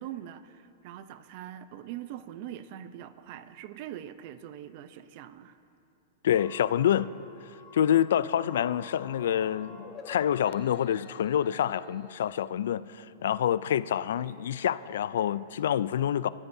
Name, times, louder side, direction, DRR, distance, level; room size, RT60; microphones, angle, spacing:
voice 1, 0.0-5.6, right 11 dB, 50° right, 0.6 m, -42 dB
voice 2, 6.2-7.1 7.7-16.3, left 10 dB, 75° left, 0.3 m, -27 dB
sound 1, 6.3-12.3, left 5 dB, 25° left, 1.2 m, -50 dB
27.5 x 14.0 x 2.7 m
hypercardioid pair, 135°, 0 cm